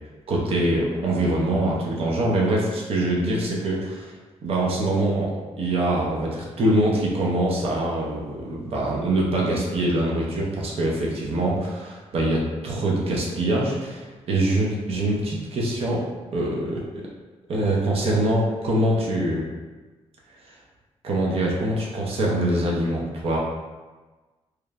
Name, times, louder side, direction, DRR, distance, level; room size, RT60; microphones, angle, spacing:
voice 1, 0.3-4.1 4.4-16.1 16.3-17.1 17.5-19.4 21.0-23.4, right 1 dB, 60° right, -3 dB, 0.5 m, -24 dB
2.9 x 2.0 x 2.3 m, 1.3 s
cardioid pair, 130°, 12 cm